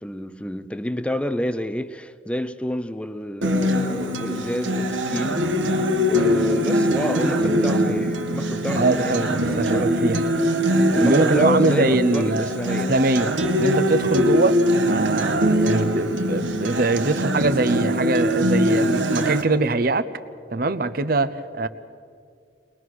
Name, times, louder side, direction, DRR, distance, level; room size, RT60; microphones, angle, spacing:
voice 1, 0.0-5.4 6.1-9.9 10.9-12.9, equal, 5° left, 0.5 m, -29 dB
Acoustic guitar, 3.4-19.4, equal, 90° right, 1.5 m, -22 dB
voice 2, 8.8-9.3 9.6-10.2 11.0-12.6 12.9-13.3 13.6-14.6 14.9-20.1 20.5-21.7, right 2 dB, 50° right, 0.8 m, -22 dB
22.0 x 20.5 x 6.3 m
head